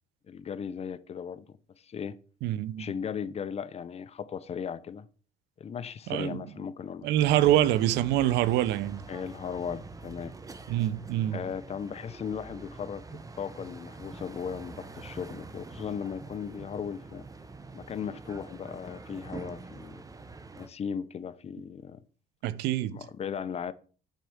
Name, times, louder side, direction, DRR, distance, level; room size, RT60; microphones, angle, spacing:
voice 1, 0.3-1.4 1.8-2.2 2.8-5.1 5.6-7.2 7.4-7.6 9.1-10.3 11.3-17.3 17.7-20.0 20.6-22.0 22.9-23.7, left 7 dB, 40° left, 0.7 m, -37 dB
voice 2, 2.4-2.9 6.1-6.4 7.0-9.1 10.7-11.4 22.4-23.0, right 13 dB, 90° right, 0.6 m, -25 dB
sound 1, 7.2-20.7, right 3 dB, 20° right, 1.0 m, -45 dB
9.2 x 4.6 x 7.0 m
cardioid pair, 110°, 17 cm